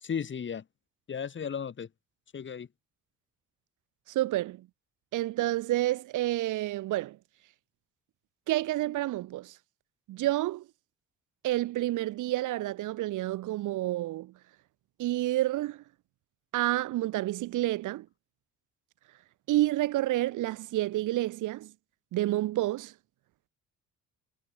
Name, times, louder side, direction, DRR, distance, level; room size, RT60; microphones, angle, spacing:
voice 1, 0.0-0.6 1.1-1.9 2.3-2.7, left 7 dB, 40° left, 1.6 m, -35 dB
voice 2, 4.1-4.7 5.1-7.2 8.5-9.6 10.1-10.7 11.4-14.3 15.0-15.8 16.5-18.1 19.5-21.7 22.1-22.9, right 16 dB, 80° right, 1.2 m, -29 dB
cardioid pair, 90°, 30 cm